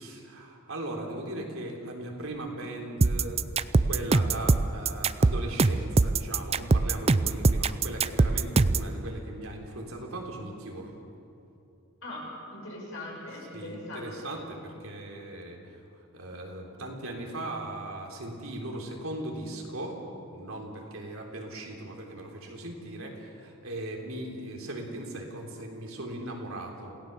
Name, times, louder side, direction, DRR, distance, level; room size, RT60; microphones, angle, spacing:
voice 1, 0.0-3.4 3.9-10.9 13.5-15.8 16.1-26.9, right 1 dB, 80° right, 1 dB, 3.6 m, -38 dB
sound 1, 3.0-8.9, right 3 dB, 30° right, 0.4 m, -22 dB
voice 2, 12.0-14.4, left 1 dB, 65° left, -3 dB, 7.4 m, -40 dB
28.0 x 17.0 x 6.9 m, 2.7 s
head